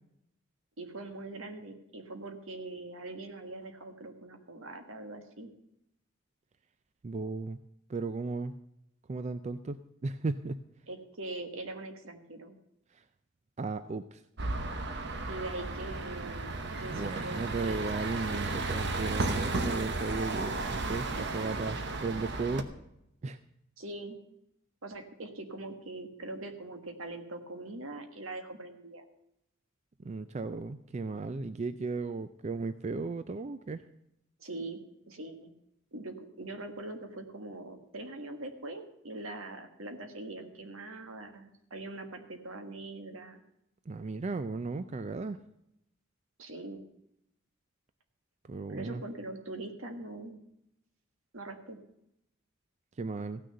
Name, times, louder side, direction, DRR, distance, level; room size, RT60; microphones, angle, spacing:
voice 1, 0.8-5.5 10.9-12.6 15.3-18.0 23.8-24.2 24.8-29.0 34.4-34.8 35.1-35.5 35.9-43.4 46.4-46.8 48.7-50.4 51.3-51.9, right 2 dB, 75° right, 6 dB, 1.6 m, -42 dB
voice 2, 7.0-7.6 7.9-8.5 9.1-10.6 12.9-13.0 13.6-14.2 16.9-22.7 23.2-23.4 30.0-33.8 43.9-45.4 48.5-49.0 53.0-53.4, right 3 dB, 35° right, 12 dB, 0.4 m, -35 dB
sound 1, 14.4-22.6, right 2 dB, 55° right, 1.0 m, -34 dB
15.5 x 6.4 x 6.8 m, 0.81 s
head